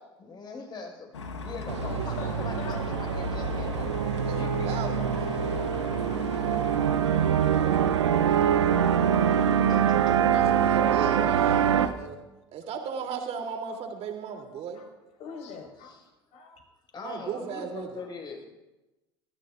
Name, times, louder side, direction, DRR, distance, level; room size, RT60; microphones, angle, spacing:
voice 1, 0.2-3.9 4.3-4.9 5.8-6.5 8.3-8.4 9.7-10.2 15.8-16.0 16.9-18.4, left 4 dB, 30° left, 1 dB, 5.8 m, -42 dB
sound 1, 1.1-11.9, left 3 dB, 85° left, 1.4 m, -37 dB
sound 2, 1.7-11.9, right 9 dB, 80° right, 0.8 m, -24 dB
voice 2, 1.8-2.8 13.7-13.8 14.3-14.9 15.2-16.0 16.3-16.7 16.9-17.0 17.5-18.1, left 5 dB, 50° left, 2 dB, 5.3 m, -44 dB
voice 3, 4.2-4.9 10.3-12.2 12.5-14.8 17.0-18.0, right 6 dB, 45° right, 3 dB, 3.3 m, -35 dB
29.5 x 15.0 x 2.6 m, 1.0 s
hypercardioid pair, 75°, 14 cm